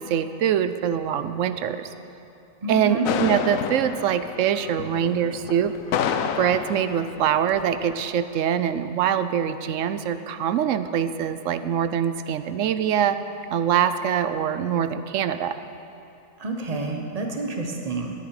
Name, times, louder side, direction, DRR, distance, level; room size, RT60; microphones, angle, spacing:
voice 1, 0.0-1.9 2.7-5.8 6.4-13.2 13.5-15.6, right 9 dB, 70° right, 11 dB, 0.9 m, -24 dB
voice 2, 2.6-3.0 16.4-18.1, right 3 dB, 30° right, 2 dB, 1.3 m, -28 dB
sound 1, 3.0-8.0, left 7 dB, 80° left, 1.1 m, -30 dB
18.0 x 9.5 x 4.9 m, 2.8 s
omnidirectional pair, 1.4 m